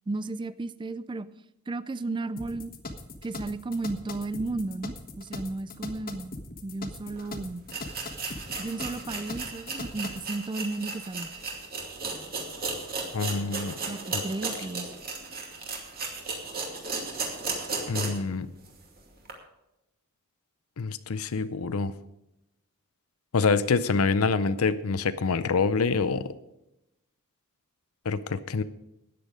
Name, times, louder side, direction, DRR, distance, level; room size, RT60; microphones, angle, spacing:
voice 1, 0.1-1.3 1.7-2.7 3.2-6.4 6.6-7.7 8.6-11.3 13.9-14.9, right 2 dB, 20° right, 15 dB, 0.4 m, -34 dB
sound 1, 2.4-10.3, left 2 dB, 40° left, 1.3 m, -40 dB
sound 2, 7.2-7.3 7.7-18.3 18.7-18.8 19.3-19.4, right 4 dB, 45° right, 2.4 m, -35 dB
voice 2, 13.1-13.8 14.1-14.2 17.9-18.5 20.8-21.9 23.3-26.3 28.1-28.6, left 4 dB, 75° left, 13 dB, 0.6 m, -26 dB
13.5 x 9.3 x 5.1 m, 0.89 s
head